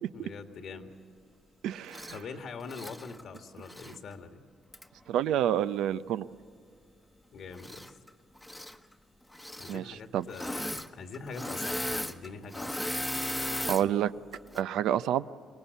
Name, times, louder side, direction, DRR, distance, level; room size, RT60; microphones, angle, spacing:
voice 1, 0.1-0.9 2.1-4.4 7.3-8.0 9.6-12.9, left 4 dB, 65° left, 6 dB, 1.9 m, -43 dB
voice 2, 1.6-2.2 5.1-6.3 9.7-10.2 13.7-14.1 14.5-15.3, right 11 dB, 85° right, 13 dB, 0.5 m, -28 dB
Engine / Mechanisms, 1.9-2.2 2.6-4.0 4.7-4.8 7.5-8.1 8.4-8.8 9.3-9.8 10.3-10.9 11.1-13.8 14.3-14.6, left 1 dB, 5° left, 1.0 m, -36 dB
23.5 x 19.5 x 8.2 m, 2.3 s
cardioid pair, 90°, 0 cm